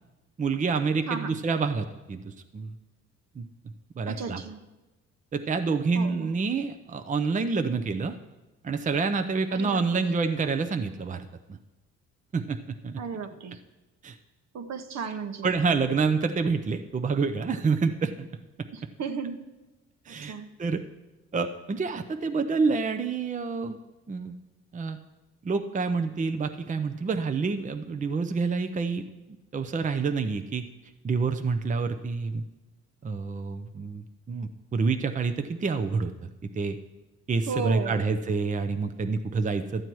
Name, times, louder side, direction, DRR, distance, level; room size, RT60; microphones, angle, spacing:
voice 1, 0.4-2.7 3.4-3.5 4.0-4.4 5.3-8.1 8.6-11.6 12.3-12.6 12.8-13.0 14.0-14.2 15.4-18.3 20.1-20.3 20.6-20.8 21.3-23.8 24.1-24.3 24.7-25.0 25.4-29.0 29.5-30.7 31.0-32.4 33.0-36.8 37.3-39.8, right 4 dB, 25° right, 8 dB, 0.6 m, -28 dB
voice 2, 4.1-4.6 5.9-6.3 9.5-10.1 13.0-13.6 14.5-15.5 18.7-19.4 20.1-20.5 37.5-38.1, right 5 dB, 60° right, 8 dB, 1.1 m, -35 dB
12.5 x 7.7 x 4.6 m, 1.1 s
cardioid pair, 90°, 30 cm